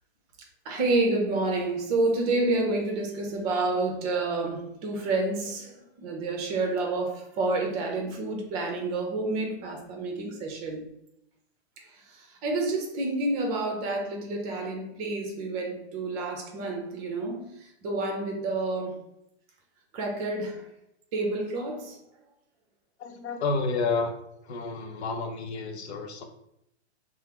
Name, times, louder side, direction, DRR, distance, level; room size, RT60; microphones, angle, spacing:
voice 1, 0.6-10.8 12.4-17.5 17.8-19.0 19.9-20.6 21.1-22.0, right 2 dB, 35° right, 2 dB, 0.7 m, -29 dB
voice 2, 23.0-24.1 24.4-26.2, left 4 dB, 70° left, 4 dB, 0.7 m, -30 dB
3.3 x 2.0 x 2.9 m, 0.78 s
hypercardioid pair, 130°, 35 cm